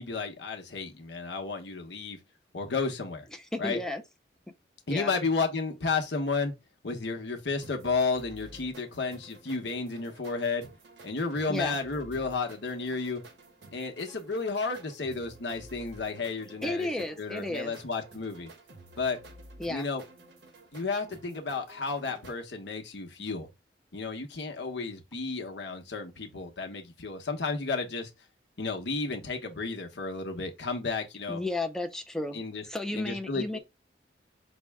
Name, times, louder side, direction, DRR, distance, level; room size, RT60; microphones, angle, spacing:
voice 1, 0.0-2.2 2.5-3.3 3.6-3.8 4.9-6.5 6.8-10.7 11.0-13.2 13.7-16.9 17.2-18.5 19.0-19.2 19.7-20.0 20.7-23.5 23.9-28.1 28.6-31.4 32.3-32.6 32.9-33.6, left 4 dB, 75° left, 0.9 m, -32 dB
voice 2, 3.3-4.0 4.9-5.1 11.5-11.8 16.6-17.7 19.6-19.9 31.3-33.6, left 2 dB, 5° left, 0.4 m, -33 dB
sound 1, 7.6-22.4, right 2 dB, 75° right, 0.8 m, -52 dB
5.3 x 2.1 x 3.4 m
head